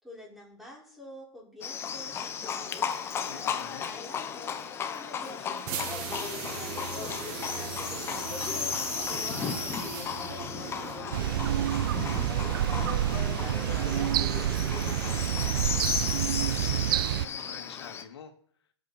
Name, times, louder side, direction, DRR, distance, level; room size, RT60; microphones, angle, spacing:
voice 1, 0.0-3.0 3.3-4.6 4.9-15.8, left 1 dB, ahead, -5 dB, 5.6 m, -48 dB
Livestock farm animals working animals, 1.6-18.0, left 7 dB, 15° left, 1.1 m, -35 dB
voice 2, 3.2-4.0 16.6-18.3, left 8 dB, 70° left, 5 dB, 2.4 m, -46 dB
sound 1, 5.6-11.3, right 7 dB, 35° right, 1.5 m, -38 dB
sound 2, 11.1-17.3, right 12 dB, 55° right, 0.6 m, -28 dB
18.5 x 8.3 x 4.5 m, 0.62 s
hypercardioid pair, 135°, 14 cm